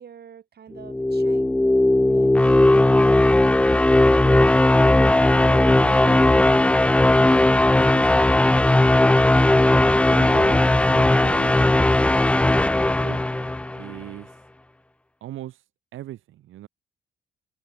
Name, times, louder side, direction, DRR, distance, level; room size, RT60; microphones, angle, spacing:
voice 1, 0.0-1.5 2.0-2.8, right 8 dB, 55° right, 6.8 m, -46 dB
sound 1, 0.8-13.9, left 1 dB, 5° left, 0.4 m, -17 dB
voice 2, 3.8-4.9 5.3-6.5 7.5-8.5 9.4-11.6 12.2-13.2 13.8-14.4 15.2-15.6 15.9-16.7, right 13 dB, 80° right, 5.3 m, -40 dB
cardioid pair, 90°, 20 cm